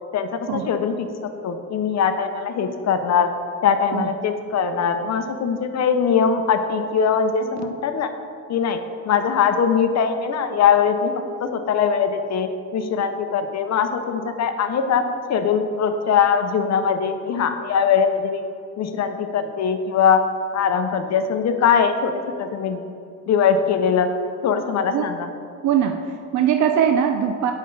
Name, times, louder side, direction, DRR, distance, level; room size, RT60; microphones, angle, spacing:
voice 1, 0.1-3.3 3.6-8.1 8.5-8.8 9.1-11.1 11.4-15.0 15.3-18.4 18.8-20.2 20.5-22.1 22.4-22.8 23.3-24.1 24.4-25.3, left 7 dB, 55° left, 7 dB, 0.6 m, -21 dB
voice 2, 25.6-27.5, right 8 dB, 60° right, 5 dB, 0.4 m, -21 dB
8.7 x 5.2 x 3.9 m, 2.4 s
cardioid pair, 160°, 32 cm